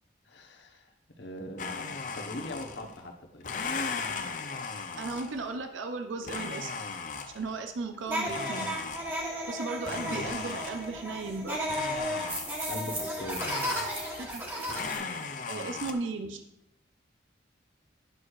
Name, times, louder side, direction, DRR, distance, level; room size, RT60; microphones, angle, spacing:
voice 1, 0.3-3.5 10.1-10.4 12.7-13.4, left 1 dB, 70° left, 3 dB, 1.0 m, -40 dB
Domestic sounds home sounds, 1.6-3.0 3.4-5.5 6.2-7.6 8.3-9.4 9.9-11.1 11.7-12.8 13.3-14.4 14.7-15.9, left 5 dB, 45° left, 0.5 m, -37 dB
voice 2, 5.0-6.7 7.3-8.7 9.5-11.6 14.2-15.1 15.5-16.4, right 3 dB, 90° right, 7 dB, 0.5 m, -36 dB
sound 1, 8.1-15.0, equal, 10° right, 1.1 m, -34 dB
9.5 x 6.3 x 2.4 m, 0.80 s
head